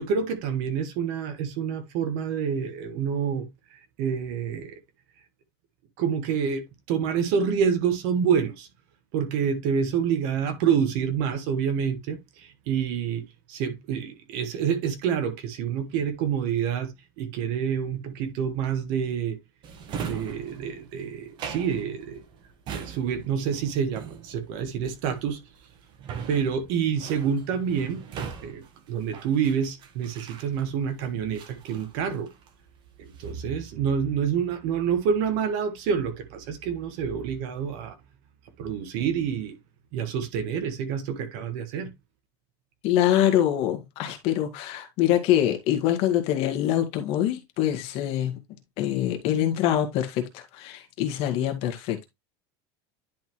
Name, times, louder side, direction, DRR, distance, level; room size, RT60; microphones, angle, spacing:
voice 1, 0.0-4.8 6.0-8.7 9.1-19.4 20.0-22.2 22.7-25.4 26.3-28.0 28.4-32.3 33.0-38.0 38.6-39.6 39.9-41.9, right 7 dB, 55° right, 1.4 m, -27 dB
Drawer open or close, 19.6-30.9 31.3-32.6 33.0-33.5, right 7 dB, 35° right, 1.2 m, -40 dB
voice 2, 42.8-48.4 48.8-52.1, left 11 dB, 45° left, 1.6 m, -24 dB
10.5 x 4.2 x 3.0 m
supercardioid pair, 170°, 14 cm